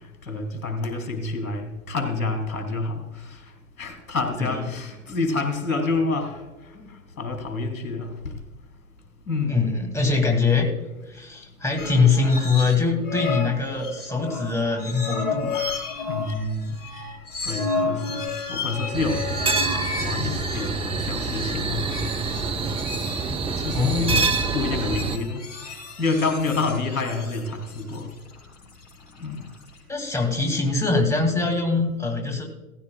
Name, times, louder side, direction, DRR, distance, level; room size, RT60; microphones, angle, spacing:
voice 1, 0.2-3.4 3.8-6.4 6.7-6.9 7.2-8.3 9.3-9.6 16.1-16.7 17.4-19.3 19.7-21.9 23.0-23.2 23.6-25.4 26.0-28.1 29.2-29.4, left 3 dB, 75° left, 4 dB, 3.0 m, -28 dB
voice 2, 9.5-10.7 11.1-15.7 19.6-19.7 23.7-24.4 29.9-32.5, left 4 dB, 5° left, 2 dB, 2.2 m, -23 dB
sound 1, 11.8-12.8 13.0-29.8, left 4 dB, 55° left, 5.0 m, -33 dB
sound 2, 18.9-25.2, right 4 dB, 15° right, 0.7 m, -26 dB
17.0 x 15.0 x 2.3 m, 1.1 s
hypercardioid pair, 100°, 43 cm